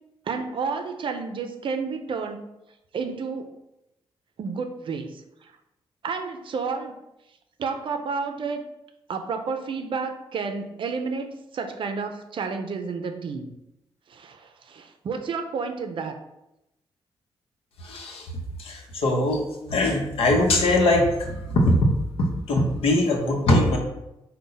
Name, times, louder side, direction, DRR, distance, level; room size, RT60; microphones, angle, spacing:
voice 1, 0.3-2.4 2.9-3.5 4.4-5.2 6.0-7.0 7.6-8.6 9.1-13.5 14.1-16.2, right 5 dB, 60° right, 6 dB, 0.5 m, -31 dB
voice 2, 17.8-18.3 18.6-23.8, left 1 dB, 75° left, 2 dB, 0.8 m, -22 dB
3.9 x 2.2 x 3.9 m, 0.89 s
cardioid pair, 70°, 10 cm